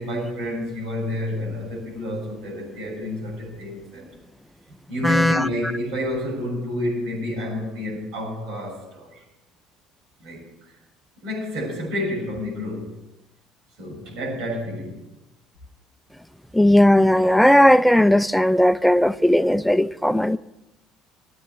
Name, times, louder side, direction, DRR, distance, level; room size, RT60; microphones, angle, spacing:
voice 1, 0.0-4.1 4.9-9.2 10.2-10.4 11.2-12.9 13.8-15.0, left 1 dB, 75° right, 6.8 m, -29 dB
voice 2, 5.0-5.5 16.5-20.4, left 1 dB, ahead, 0.5 m, -17 dB
12.5 x 8.7 x 8.3 m
supercardioid pair, 95°, 0 cm